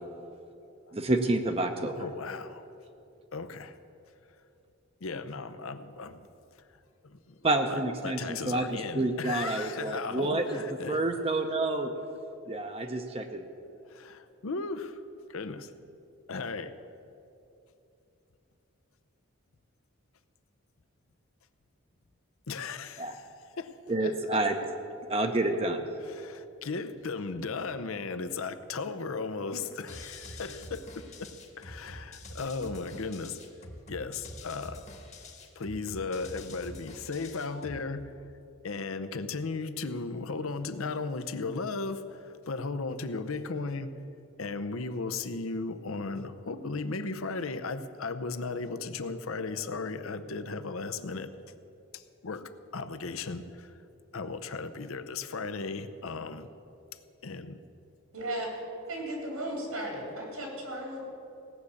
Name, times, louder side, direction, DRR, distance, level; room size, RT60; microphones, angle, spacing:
voice 1, 0.9-2.0 7.4-8.7 8.9-10.6 10.9-11.9 12.5-13.5 23.0-23.1 23.9-24.6 25.1-25.9, right 2 dB, 25° right, 5 dB, 0.6 m, -28 dB
voice 2, 2.0-2.7 3.3-3.8 5.0-6.3 7.0-11.0 13.9-15.0 15.3-15.7 16.3-16.7 22.5-23.3 23.6-23.7 24.0-24.4 26.0-31.3 31.6-33.4 33.9-34.9 35.6-38.1 38.6-43.9 44.4-51.3 51.9-52.4 52.7-53.8 54.1-56.5 57.2-57.6, left 4 dB, 75° left, 11 dB, 0.7 m, -36 dB
sound 1, 29.9-37.9, left 1 dB, 30° left, 1.2 m, -46 dB
voice 3, 58.1-58.5 58.9-61.0, right 1 dB, 85° right, 0 dB, 3.8 m, -35 dB
17.0 x 6.5 x 8.4 m, 2.8 s
head